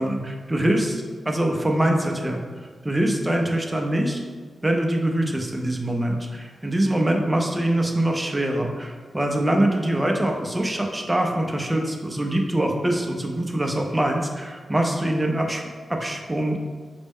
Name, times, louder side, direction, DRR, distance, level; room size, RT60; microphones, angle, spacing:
voice 1, 0.0-2.4 2.8-4.2 4.6-16.7, right 1 dB, 10° right, 1 dB, 0.4 m, -24 dB
5.0 x 2.1 x 3.5 m, 1.5 s
wide cardioid pair, 155°, 0 cm